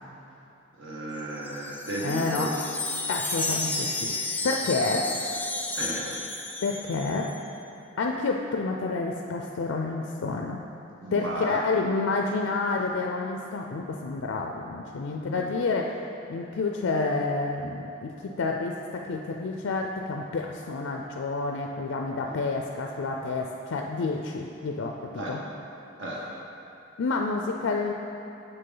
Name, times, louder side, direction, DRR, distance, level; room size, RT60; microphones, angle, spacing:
voice 1, 0.8-2.7 4.9-5.0 5.7-6.2 11.0-11.6 15.3-15.5 22.2-22.3 25.1-25.3 26.0-26.3, right 1 dB, 65° right, -4 dB, 0.9 m, -34 dB
Wind chime, 1.2-7.4, left 2 dB, 10° left, 0.4 m, -32 dB
voice 2, 2.0-2.5 3.1-4.1 4.4-5.1 6.6-7.3 8.0-10.6 11.1-15.9 16.3-25.4 27.0-27.9, left 3 dB, 70° left, 1 dB, 0.4 m, -29 dB
7.0 x 6.6 x 3.9 m, 3.0 s
head